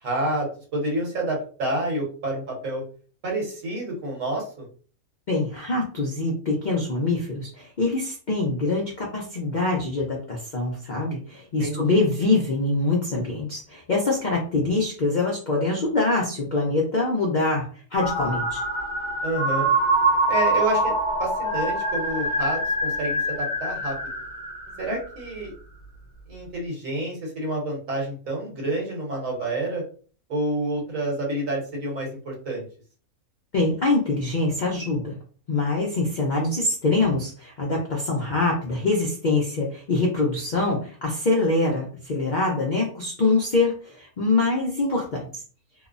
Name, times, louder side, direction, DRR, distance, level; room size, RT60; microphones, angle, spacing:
voice 1, 0.0-2.8 3.2-4.7 11.6-11.8 19.2-19.7 20.3-20.9 21.2-24.0 24.8-25.5 26.3-29.8 30.3-32.6, right 1 dB, 65° right, -1 dB, 1.3 m, -28 dB
voice 2, 5.3-18.6 33.5-35.2 35.5-45.4, left 2 dB, 60° left, -2 dB, 0.4 m, -24 dB
sound 1, 17.9-25.2, right 1 dB, 30° left, 1.3 m, -25 dB
3.0 x 2.0 x 2.4 m, 0.40 s
omnidirectional pair, 1.5 m